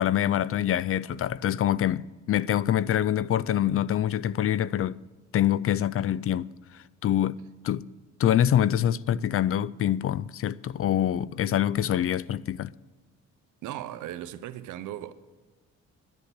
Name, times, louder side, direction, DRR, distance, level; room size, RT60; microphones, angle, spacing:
voice 1, 0.0-5.0 5.3-6.5 7.0-7.9 8.2-12.7, left 11 dB, 50° left, 0.4 m, -25 dB
voice 2, 13.6-15.1, right 12 dB, 85° right, 0.8 m, -37 dB
10.5 x 10.0 x 8.0 m
cardioid pair, 90°, 30 cm